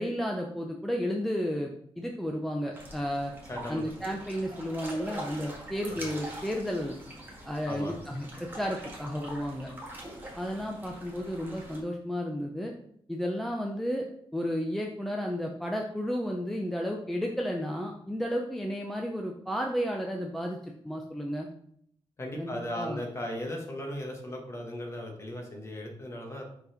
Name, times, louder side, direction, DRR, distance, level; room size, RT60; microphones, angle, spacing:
voice 1, 0.0-1.7 2.0-3.3 3.7-7.0 7.5-9.7 10.3-12.7 13.1-14.0 14.3-21.5 22.4-23.0, equal, ahead, 1 dB, 0.5 m, -32 dB
sound 1, 2.7-11.8, right 1 dB, 20° right, 1.7 m, -44 dB
voice 2, 3.5-3.8 5.9-6.1 7.7-8.0 22.2-26.4, left 1 dB, 25° left, 1 dB, 1.4 m, -37 dB
5.4 x 4.1 x 4.9 m, 0.68 s
wide cardioid pair, 140°, 11 cm